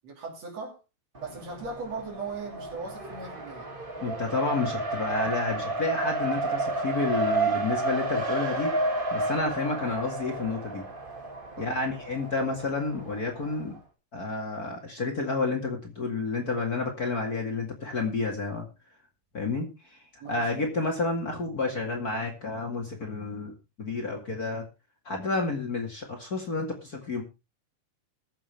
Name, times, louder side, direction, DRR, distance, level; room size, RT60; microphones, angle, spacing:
voice 1, 0.0-0.8 1.2-3.7 11.6-11.8 20.2-20.7, right 4 dB, 60° right, 4.0 m, -38 dB
Race car auto racing, 1.2-13.8, right 2 dB, 20° right, 1.7 m, -31 dB
voice 2, 4.0-8.7 9.1-10.8 11.6-13.7 14.1-18.7 19.3-20.0 20.3-24.6 25.1-27.2, left 3 dB, 35° left, 2.3 m, -30 dB
21.0 x 7.4 x 3.4 m
omnidirectional pair, 3.4 m